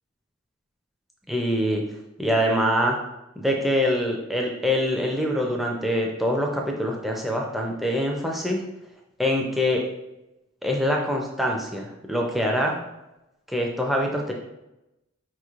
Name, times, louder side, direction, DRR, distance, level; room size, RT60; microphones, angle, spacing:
voice 1, 1.3-1.8 2.2-3.0 3.4-8.6 9.2-9.8 10.6-12.8 13.5-14.3, equal, ahead, -1 dB, 0.4 m, -24 dB
4.6 x 3.0 x 2.4 m, 0.94 s
head